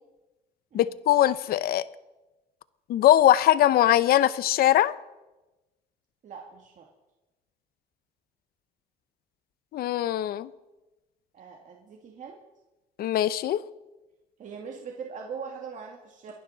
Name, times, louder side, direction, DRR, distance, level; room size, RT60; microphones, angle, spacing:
voice 1, 0.7-1.9 2.9-4.9 9.7-10.5 13.0-13.6, left 13 dB, 65° left, 16 dB, 0.7 m, -21 dB
voice 2, 6.2-6.9 11.3-12.4 14.4-16.3, right 6 dB, 50° right, 1 dB, 1.9 m, -41 dB
28.5 x 11.0 x 4.0 m, 1.1 s
cardioid pair, 110°, 17 cm